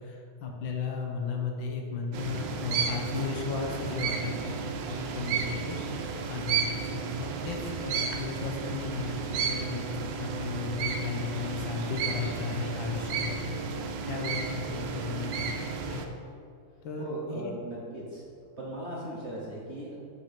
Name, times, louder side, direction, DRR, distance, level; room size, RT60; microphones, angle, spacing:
voice 1, 0.0-5.8 6.3-13.6 14.0-16.2 16.8-17.5, left 5 dB, 75° left, 1 dB, 1.6 m, -35 dB
sound 1, 2.1-16.1, right 6 dB, 75° right, 1.2 m, -33 dB
voice 2, 17.0-18.2 18.6-20.0, right 1 dB, 45° right, -5 dB, 1.0 m, -38 dB
6.0 x 4.6 x 5.8 m, 2.4 s
omnidirectional pair, 2.2 m